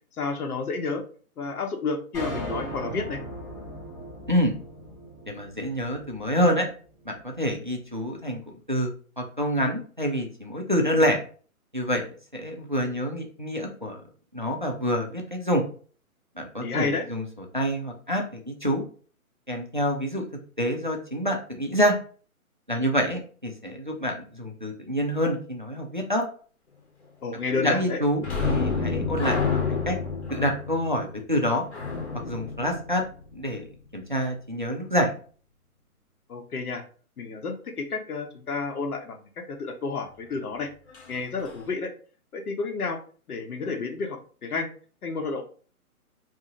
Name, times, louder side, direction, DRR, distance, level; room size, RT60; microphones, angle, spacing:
voice 1, 0.2-1.0 1.4-3.2 16.6-17.1 27.2-28.0 36.3-36.8 37.2-40.7 41.1-41.9 42.3-43.0 43.3-44.7 45.0-45.4, left 4 dB, 80° left, 4 dB, 1.0 m, -30 dB
sound 1, 2.1-6.6, right 1 dB, 5° left, 1.0 m, -37 dB
voice 2, 5.3-6.7 7.1-8.4 8.7-11.2 11.7-12.1 12.3-14.0 14.3-15.6 16.4-17.2 17.5-18.8 19.5-20.2 20.6-21.9 22.7-26.2 27.5-30.0 30.3-31.6 32.3-33.0 33.3-33.6 33.9-35.1, equal, 35° right, 2 dB, 0.4 m, -27 dB
sound 2, 28.2-33.6 40.9-41.1 41.5-41.6, left 4 dB, 45° left, 1.0 m, -29 dB
2.8 x 2.7 x 3.7 m, 0.41 s
hypercardioid pair, 180°, 44 cm